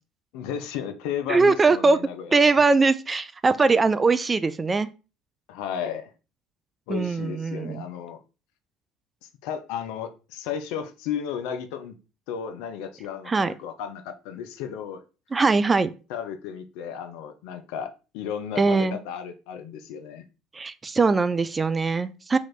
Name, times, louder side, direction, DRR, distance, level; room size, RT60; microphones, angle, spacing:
voice 1, 0.3-2.5 5.5-6.1 6.9-8.2 9.4-12.0 12.3-15.0 16.1-20.2, left 8 dB, 65° left, 0.5 m, -34 dB
voice 2, 1.3-2.0 2.3-4.9 6.9-7.8 13.3-13.5 15.3-15.9 18.6-19.0 20.5-22.4, right 4 dB, 25° right, 0.3 m, -21 dB
3.0 x 3.0 x 3.9 m
hypercardioid pair, 60°, 0 cm